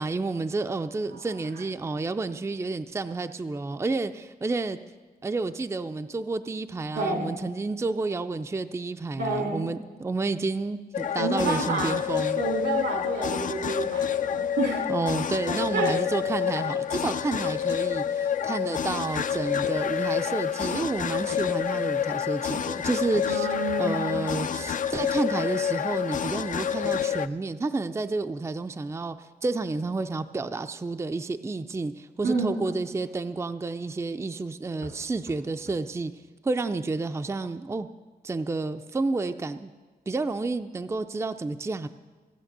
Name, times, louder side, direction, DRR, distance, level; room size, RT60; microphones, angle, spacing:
voice 1, 0.0-4.8 5.2-12.4 14.9-23.5 23.8-36.1 36.4-37.9 38.2-39.7 40.1-41.9, right 3 dB, 15° right, 9 dB, 0.4 m, -30 dB
voice 2, 6.9-7.4 9.2-9.7 11.2-12.0 12.4-14.9 15.5-15.9 23.3-24.2 24.6-24.7 32.2-32.8 34.8-34.9, right 3 dB, 85° right, 2 dB, 2.2 m, -29 dB
sound 1, 10.9-27.3, left 8 dB, 50° left, 0.4 m, -28 dB
15.0 x 8.4 x 6.7 m, 1.3 s
cardioid pair, 90°, 17 cm